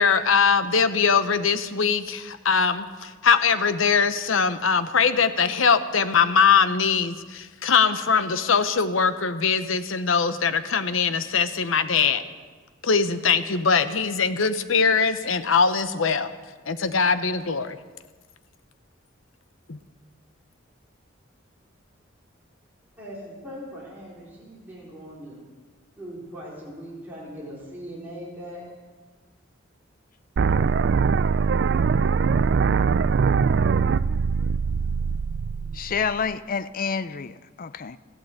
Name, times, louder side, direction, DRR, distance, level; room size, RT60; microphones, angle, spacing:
voice 1, 0.0-12.2 12.8-16.3 16.7-17.8 19.7-19.8, left 6 dB, 75° left, 11 dB, 0.9 m, -22 dB
voice 2, 23.0-25.4 26.0-28.7, equal, 10° right, -7 dB, 4.1 m, -40 dB
sound 1, 30.4-36.3, right 5 dB, 60° right, 0.4 m, -22 dB
voice 3, 35.7-38.0, left 6 dB, 45° left, 14 dB, 0.5 m, -29 dB
14.5 x 12.0 x 8.0 m, 1.4 s
head